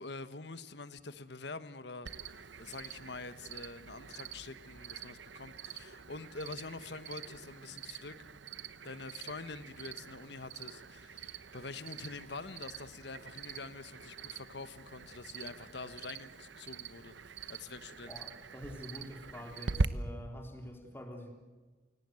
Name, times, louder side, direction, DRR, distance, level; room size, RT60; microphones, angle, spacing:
voice 1, 0.0-8.2 8.8-17.1 17.5-18.1, left 3 dB, 65° left, 13 dB, 1.3 m, -46 dB
Cricket, 2.0-19.8, right 3 dB, 75° right, 1.0 m, -43 dB
voice 2, 18.1-21.3, equal, 10° left, 3 dB, 3.6 m, -46 dB
29.0 x 17.5 x 7.8 m, 1.3 s
head